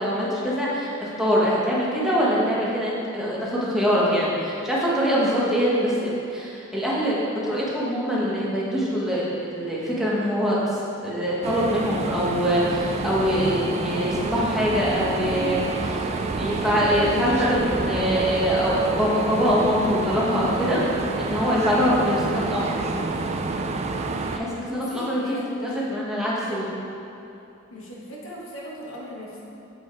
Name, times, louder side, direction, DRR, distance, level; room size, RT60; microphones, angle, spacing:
voice 1, 0.0-7.1 7.4-9.3 9.5-20.8 21.2-22.8 24.3-25.2 25.6-26.7, equal, ahead, -7 dB, 1.2 m, -24 dB
sound 1, 11.4-24.4, right 3 dB, 30° right, 0.4 m, -28 dB
voice 2, 24.7-26.0 26.3-26.6 27.7-29.4, equal, 75° left, -4 dB, 1.5 m, -38 dB
8.0 x 5.0 x 4.7 m, 2.8 s
head